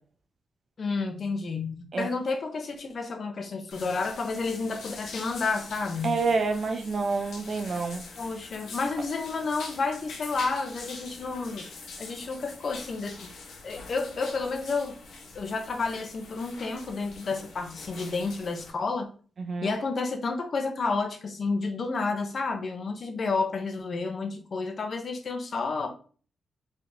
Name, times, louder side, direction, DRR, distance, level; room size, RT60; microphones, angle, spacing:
voice 1, 0.8-6.2 8.2-13.3 13.6-15.0 15.3-19.1 19.6-25.9, left 4 dB, 45° left, 5 dB, 0.7 m, -31 dB
sound 1, 3.7-18.7, left 3 dB, 85° left, 1.1 m, -44 dB
voice 2, 6.0-8.0 19.4-19.7, right 4 dB, 45° right, 6 dB, 0.6 m, -28 dB
4.4 x 3.5 x 2.7 m, 0.40 s
wide cardioid pair, 140°, 0 cm